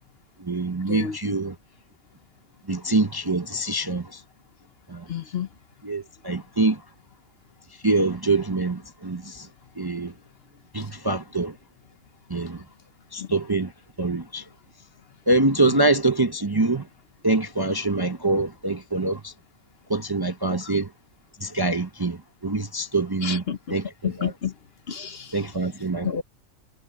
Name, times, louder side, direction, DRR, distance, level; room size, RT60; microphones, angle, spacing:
voice 1, 0.4-1.6 2.7-4.2 4.9-5.1 5.8-6.8 7.8-9.5 9.8-10.1 10.7-11.6 12.3-12.6 13.1-13.7 14.0-14.4 15.3-16.9 17.2-19.3 19.9-20.9 21.4-23.4 23.7-24.3 25.3-26.2, right 2 dB, 25° right, 0.6 m, -25 dB
voice 2, 5.1-5.5 13.2-13.3 23.2-23.6 24.0-24.5 24.9-25.4 26.0-26.2, left 8 dB, 55° left, 1.0 m, -29 dB
omnidirectional pair, 1.4 m